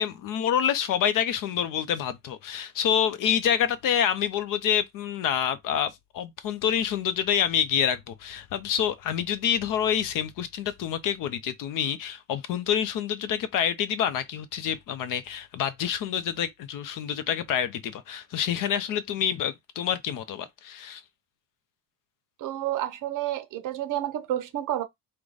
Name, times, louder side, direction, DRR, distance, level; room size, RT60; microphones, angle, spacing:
voice 1, 0.0-21.0, left 9 dB, 50° left, 0.6 m, -27 dB
voice 2, 22.4-24.8, right 13 dB, 50° right, 0.7 m, -30 dB
4.7 x 2.2 x 3.9 m
cardioid pair, 180°, 41 cm